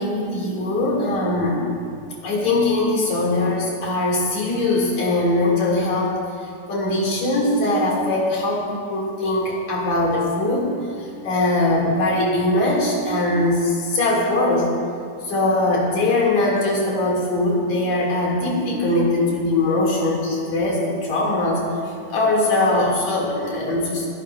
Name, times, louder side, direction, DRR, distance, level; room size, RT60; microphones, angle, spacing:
voice 1, 0.0-1.7 2.2-6.2 6.7-10.7 11.2-14.7 15.2-21.7 22.1-24.1, left 2 dB, 60° left, -3 dB, 3.4 m, -21 dB
28.0 x 9.8 x 2.4 m, 2.3 s
omnidirectional pair, 3.8 m